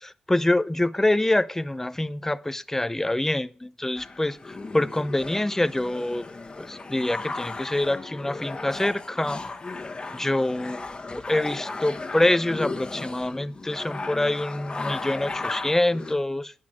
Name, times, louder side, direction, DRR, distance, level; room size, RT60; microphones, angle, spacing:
voice 1, 0.0-6.3 6.6-9.4 10.1-10.8 11.1-16.5, left 1 dB, 15° left, 0.6 m, -25 dB
sound 1, 3.9-16.1, left 3 dB, 35° left, 1.4 m, -36 dB
10.0 x 6.1 x 5.9 m
supercardioid pair, 50°, 3 cm